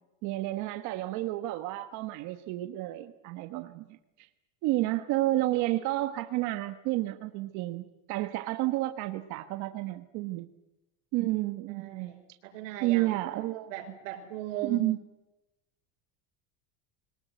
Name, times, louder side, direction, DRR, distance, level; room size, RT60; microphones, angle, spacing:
voice 1, 0.2-4.3 4.6-10.5 11.1-12.1 12.8-13.7 14.6-15.0, right 17 dB, 50° right, 8 dB, 1.2 m, -31 dB
voice 2, 11.7-13.1 13.7-14.9, right 10 dB, 85° right, 5 dB, 5.4 m, -39 dB
22.5 x 19.5 x 9.2 m, 0.95 s
cardioid pair, 170°, 37 cm